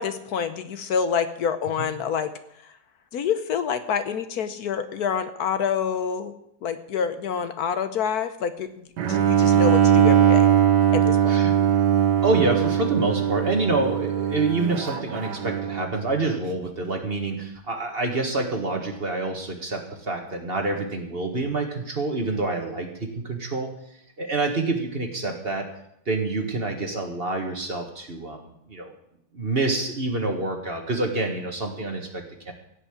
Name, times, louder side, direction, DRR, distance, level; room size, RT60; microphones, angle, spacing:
voice 1, 0.0-2.3 3.1-6.3 6.6-8.7 9.1-10.5 10.9-11.3, left 7 dB, 65° left, 10 dB, 1.2 m, -27 dB
Bowed string instrument, 9.0-16.0, right 9 dB, 80° right, 1.6 m, -20 dB
voice 2, 11.3-11.7 12.2-23.7 24.2-25.7 26.1-28.9 29.3-32.5, right 3 dB, 35° right, 4 dB, 1.7 m, -27 dB
16.5 x 5.7 x 8.6 m, 0.76 s
omnidirectional pair, 1.8 m